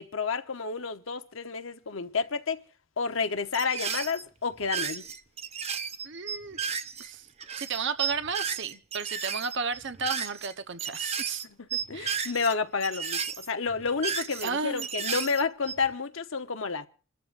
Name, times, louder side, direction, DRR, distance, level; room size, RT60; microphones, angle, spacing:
voice 1, 0.0-2.6 3.0-5.0 11.6-16.9, left 5 dB, 65° left, 1.0 m, -30 dB
sound 1, 3.5-4.2 4.5-7.1 7.4-10.5 10.8-11.5 11.7-12.5 12.8-14.5 14.8-15.9, right 7 dB, 30° right, 0.8 m, -33 dB
voice 2, 6.0-6.6 7.0-7.3 7.5-11.5 11.9-12.3 14.4-14.9, right 5 dB, 60° right, 1.0 m, -33 dB
28.0 x 13.0 x 2.6 m
head